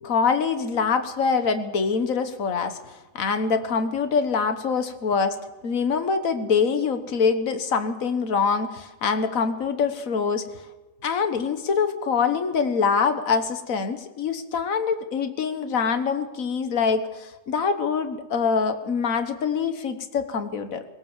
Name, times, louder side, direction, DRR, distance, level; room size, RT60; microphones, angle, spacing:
voice 1, 0.0-5.3 5.6-10.6 11.0-20.9, left 5 dB, 75° left, 8 dB, 1.7 m, -24 dB
22.5 x 18.0 x 7.4 m, 1.1 s
omnidirectional pair, 1.4 m